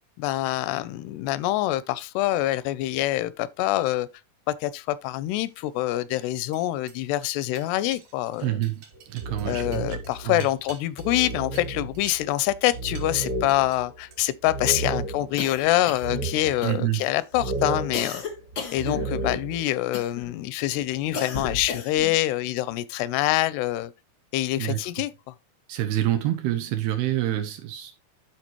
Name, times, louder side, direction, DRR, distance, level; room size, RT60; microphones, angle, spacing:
voice 1, 0.2-4.1 4.5-8.6 9.5-18.2 18.7-23.9 24.3-25.1, left 15 dB, 85° left, 2.6 m, -25 dB
sound 1, 5.3-13.8 14.1-14.6, right 7 dB, 60° right, 2.8 m, -49 dB
voice 2, 8.4-10.0 10.2-10.4 16.6-17.1 24.6-24.8 25.7-28.0, right 13 dB, 80° right, 2.7 m, -27 dB
sound 2, 8.9-10.3 10.7-10.8 11.0-15.5 16.0-16.8 17.3-19.6, right 2 dB, 35° right, 1.4 m, -32 dB
coughing on coffee, 15.4-16.3 16.6-17.1 17.9-19.4 19.9-20.4 21.1-22.1, left 5 dB, 55° left, 1.2 m, -34 dB
12.5 x 4.6 x 3.0 m
omnidirectional pair, 4.7 m